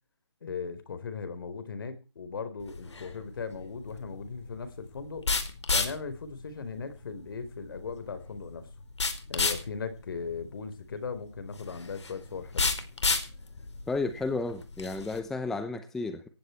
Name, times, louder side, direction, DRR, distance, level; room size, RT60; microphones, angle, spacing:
voice 1, 0.4-5.3 5.7-8.7 9.3-12.7, left 5 dB, 50° left, 11 dB, 4.5 m, -38 dB
sound 1, 2.6-15.2, left 3 dB, 75° left, 5.0 m, -33 dB
voice 2, 13.9-16.3, left 3 dB, 5° left, 10 dB, 0.8 m, -32 dB
19.0 x 15.5 x 4.6 m, 0.34 s
hypercardioid pair, 165°, 15 cm